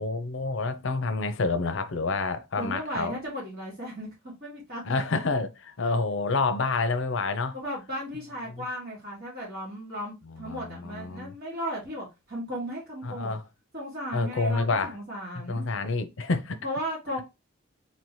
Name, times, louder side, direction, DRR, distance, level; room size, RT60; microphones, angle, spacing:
voice 1, 0.0-3.1 4.8-7.6 10.4-11.3 13.0-13.4 14.1-15.0 15.5-16.6, left 3 dB, 65° left, 0.6 m, -28 dB
voice 2, 2.6-4.1 4.4-4.9 5.9-6.0 7.5-13.3 13.7-15.7 16.6-17.2, equal, 50° right, 2.0 m, -35 dB
4.2 x 2.9 x 3.0 m
head